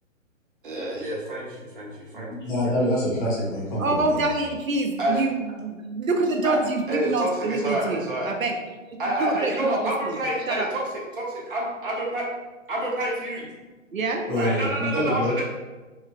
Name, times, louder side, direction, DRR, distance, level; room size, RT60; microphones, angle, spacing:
voice 1, 0.6-2.3 2.6-2.7 5.0-5.2 6.4-6.6 6.9-8.3 9.0-12.2 12.7-13.5 14.4-15.4, right 1 dB, 40° right, -3 dB, 0.7 m, -28 dB
voice 2, 2.4-4.2 14.3-15.3, left 1 dB, 40° left, -6 dB, 0.9 m, -25 dB
voice 3, 3.8-8.5 8.9-10.2 10.5-10.7 13.9-14.2, right 3 dB, 85° right, 3 dB, 0.5 m, -26 dB
3.0 x 2.4 x 2.2 m, 1.2 s
figure-of-eight pair, 130°, 40 cm